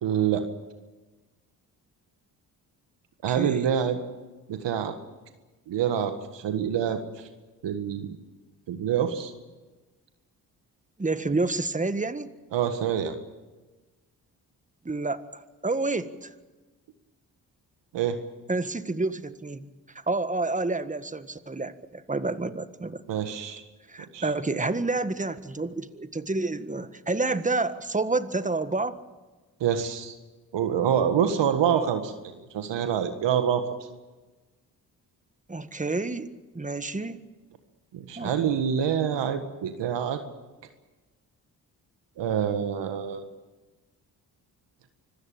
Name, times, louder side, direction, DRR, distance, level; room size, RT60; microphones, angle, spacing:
voice 1, 0.0-0.4 3.2-4.0 4.5-4.9 5.7-7.0 7.6-8.1 8.7-9.3 12.5-13.2 17.9-18.2 23.1-23.6 24.1-24.3 29.6-30.1 30.5-33.7 37.9-40.2 42.2-43.3, right 8 dB, 75° right, 8 dB, 1.8 m, -26 dB
voice 2, 3.3-3.7 11.0-12.3 14.8-16.3 18.5-19.7 20.1-23.0 23.9-29.0 35.5-36.3 36.5-37.2 38.2-38.4, right 3 dB, 15° right, 11 dB, 1.6 m, -29 dB
25.0 x 15.5 x 8.8 m, 1.2 s
supercardioid pair, 45°, 44 cm